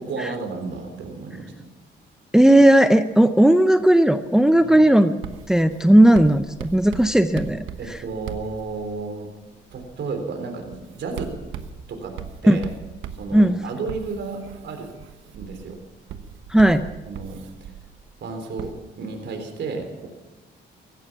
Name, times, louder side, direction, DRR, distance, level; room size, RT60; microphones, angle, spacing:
voice 1, 0.1-1.7 4.6-4.8 7.8-9.3 9.7-11.3 11.9-12.2 12.4-12.7 13.2-14.9 15.3-15.8 17.0-17.7 18.2-20.1, right 4 dB, 65° right, 4 dB, 3.7 m, -32 dB
voice 2, 2.3-5.1 5.5-7.6 12.5-12.6 13.3-13.6 16.5-16.8, right 1 dB, 5° right, 10 dB, 0.7 m, -15 dB
Writing, 5.2-9.1 9.7-10.0 10.7-18.1 18.6-18.7, right 7 dB, 85° right, 1.2 m, -39 dB
16.5 x 14.5 x 6.0 m, 1.1 s
cardioid pair, 90°, 20 cm